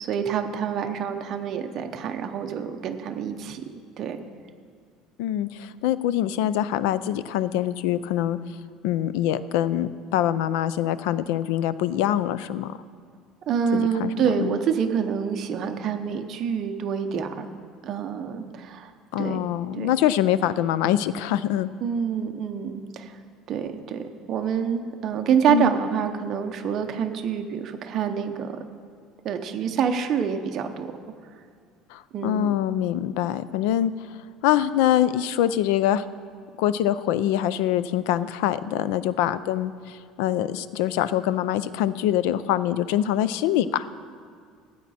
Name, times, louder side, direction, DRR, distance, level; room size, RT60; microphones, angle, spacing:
voice 1, 0.0-3.6 4.0-4.2 13.5-17.5 17.8-18.9 19.2-19.4 19.8-19.9 21.8-23.1 23.5-28.5 29.2-30.9 32.1-32.6, right 7 dB, 35° right, 5 dB, 0.7 m, -27 dB
voice 2, 5.2-8.4 8.8-12.8 13.7-14.1 14.4-14.6 19.1-21.7 25.5-25.7 31.9-33.9 34.4-36.0 36.6-43.9, left 12 dB, 70° left, 16 dB, 0.4 m, -24 dB
14.5 x 8.5 x 4.2 m, 2.1 s
cardioid pair, 180°, 0 cm